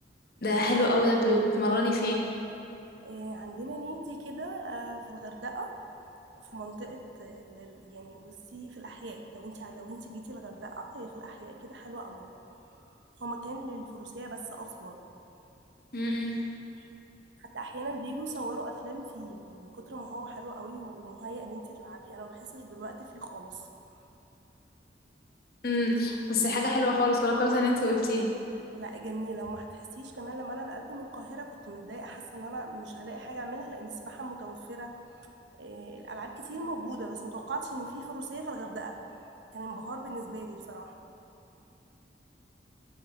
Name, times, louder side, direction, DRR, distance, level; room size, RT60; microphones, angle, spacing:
voice 1, 0.4-2.3 15.9-16.4 25.6-28.4, left 1 dB, 55° left, -1 dB, 1.1 m, -26 dB
voice 2, 3.0-5.7 6.4-12.3 12.8-12.9 13.2-15.0 16.8-16.9 17.4-23.7 28.7-35.3 35.6-39.0 39.5-41.0, right 2 dB, 90° right, 3 dB, 0.8 m, -40 dB
8.4 x 5.4 x 5.2 m, 2.9 s
head